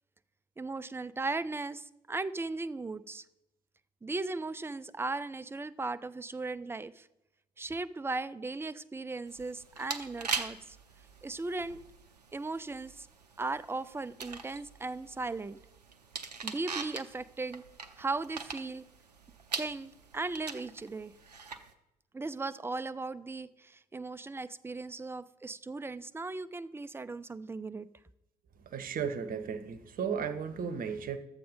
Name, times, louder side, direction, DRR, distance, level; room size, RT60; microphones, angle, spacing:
voice 1, 0.6-3.2 4.0-7.1 7.6-10.8 11.2-11.8 12.3-13.1 13.4-15.6 16.4-17.7 18.0-18.9 19.6-21.1 22.1-27.9, right 3 dB, 10° right, 13 dB, 0.5 m, -37 dB
sound 1, 9.3-21.7, right 5 dB, 90° right, 0.5 m, -42 dB
voice 2, 28.7-31.2, right 7 dB, 45° right, 11 dB, 1.0 m, -35 dB
12.0 x 7.8 x 5.2 m, 0.90 s
figure-of-eight pair, 50°, 20 cm